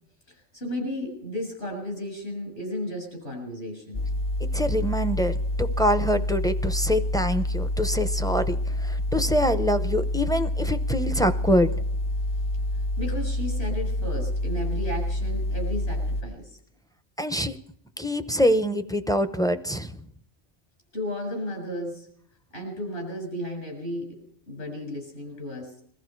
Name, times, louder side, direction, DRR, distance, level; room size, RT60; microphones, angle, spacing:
voice 1, 0.3-4.1 13.0-16.6 20.9-22.1 22.5-25.8, left 1 dB, 70° left, 2 dB, 7.2 m, -34 dB
sound 1, 3.9-16.2, left 1 dB, 35° left, 0.9 m, -27 dB
voice 2, 4.5-11.7 17.2-17.6 18.0-19.9, equal, 5° left, 9 dB, 0.5 m, -25 dB
22.0 x 14.0 x 4.6 m, 0.68 s
omnidirectional pair, 1.1 m